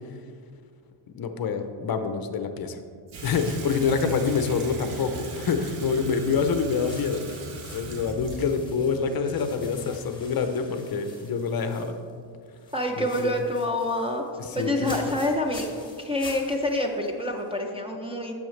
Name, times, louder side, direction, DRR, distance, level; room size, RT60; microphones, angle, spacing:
voice 1, 1.1-2.8 3.2-7.3 7.7-12.0 13.0-13.3 14.4-15.1, left 5 dB, 50° left, 7 dB, 0.6 m, -26 dB
Water tap faucet / Sink (filling or washing), 3.1-10.1, right 1 dB, 75° right, 1.1 m, -40 dB
sound 1, 3.3-5.8 6.2-12.2 12.5-17.6, left 2 dB, 10° left, 1.3 m, -48 dB
voice 2, 12.7-14.2 14.5-15.7 16.0-18.3, left 1 dB, 10° right, -1 dB, 0.4 m, -27 dB
10.5 x 7.0 x 3.2 m, 2.3 s
wide cardioid pair, 155°, 49 cm